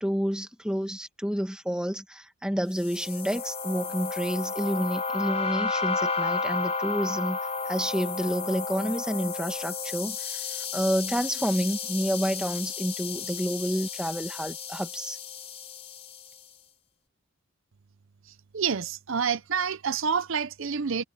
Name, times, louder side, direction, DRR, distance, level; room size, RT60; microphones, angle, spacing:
voice 1, 0.0-7.4 7.7-10.4 10.7-15.2, equal, 5° right, 1.4 m, -29 dB
sound 1, 2.8-16.2, left 4 dB, 30° left, 3.7 m, -32 dB
voice 2, 18.5-21.0, right 6 dB, 65° right, 0.6 m, -28 dB
head